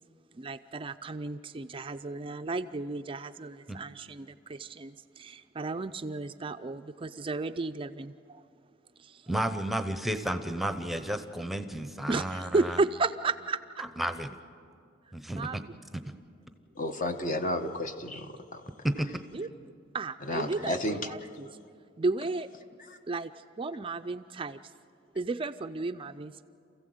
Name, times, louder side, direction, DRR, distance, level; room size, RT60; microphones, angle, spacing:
voice 1, 0.3-8.4 9.0-9.2 12.1-13.6 15.3-15.6 19.3-19.5 19.9-21.5 22.0-22.5 23.1-23.3 23.6-24.6 25.2-26.4, right 3 dB, 30° right, 9 dB, 0.4 m, -33 dB
voice 2, 9.3-12.8 13.8-14.3 15.1-15.6 15.9-16.0 18.8-19.1, right 1 dB, ahead, 9 dB, 0.9 m, -32 dB
voice 3, 16.8-18.6 20.3-21.1, left 1 dB, 45° left, 6 dB, 1.3 m, -32 dB
28.0 x 15.5 x 7.9 m, 2.4 s
head